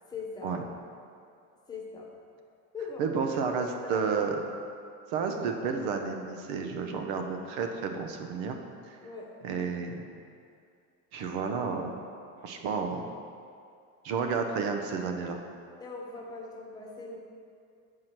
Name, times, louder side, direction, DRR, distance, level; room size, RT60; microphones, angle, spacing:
voice 1, 0.1-0.6 1.7-2.1 2.7-3.1 3.8-4.2 9.0-9.3 15.8-17.2, left 4 dB, 10° left, -2 dB, 1.1 m, -40 dB
voice 2, 3.0-4.4 5.1-8.6 8.9-9.0 9.4-10.0 11.1-12.0 12.4-13.1 14.0-15.4, right 5 dB, 70° right, 4 dB, 1.0 m, -31 dB
7.6 x 4.9 x 6.0 m, 2.4 s
cardioid pair, 155°, 36 cm